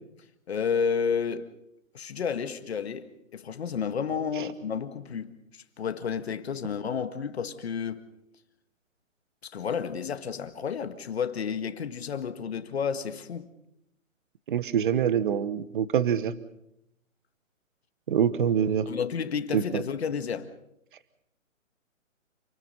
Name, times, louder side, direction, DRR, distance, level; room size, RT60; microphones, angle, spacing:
voice 1, 0.5-1.5 1.9-8.0 9.4-13.5 18.9-20.5, left 6 dB, 50° left, 1.8 m, -31 dB
voice 2, 14.5-16.3 18.1-18.9 19.5-19.8, right 8 dB, 40° right, 1.2 m, -25 dB
28.5 x 20.0 x 5.6 m
hypercardioid pair, 160°, 40 cm